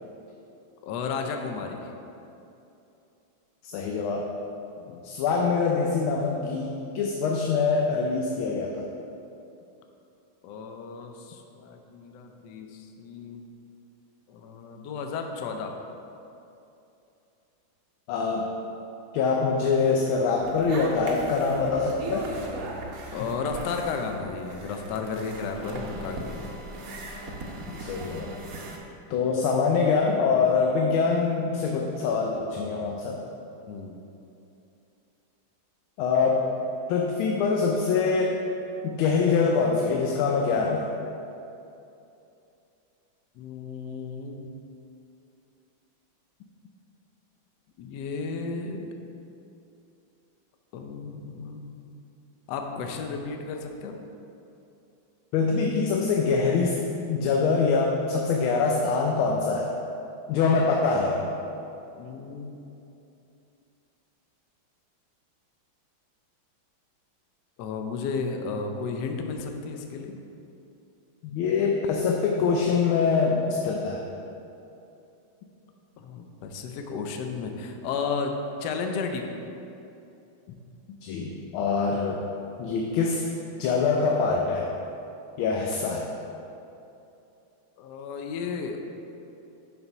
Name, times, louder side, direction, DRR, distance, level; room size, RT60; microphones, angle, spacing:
voice 1, 0.8-1.9 4.7-5.0 10.4-13.4 14.3-15.8 23.1-26.5 33.7-33.9 43.3-44.5 47.8-48.9 50.7-51.8 52.5-54.0 62.0-62.6 67.6-70.2 76.0-79.3 87.8-88.8, left 4 dB, 70° left, 4 dB, 1.1 m, -33 dB
voice 2, 3.6-4.3 5.0-8.8 18.1-18.5 19.1-22.3 27.7-28.3 29.1-33.2 36.0-36.5 36.9-38.4 38.8-40.9 55.3-56.8 57.1-59.7 60.3-61.3 71.2-74.0 81.0-82.2 82.6-83.2 83.6-84.7 85.4-86.1, left 4 dB, 85° left, 0 dB, 1.5 m, -24 dB
sound 1, 20.4-28.8, right 2 dB, 60° right, 1.0 m, -38 dB
6.9 x 4.3 x 5.4 m, 2.8 s
omnidirectional pair, 2.2 m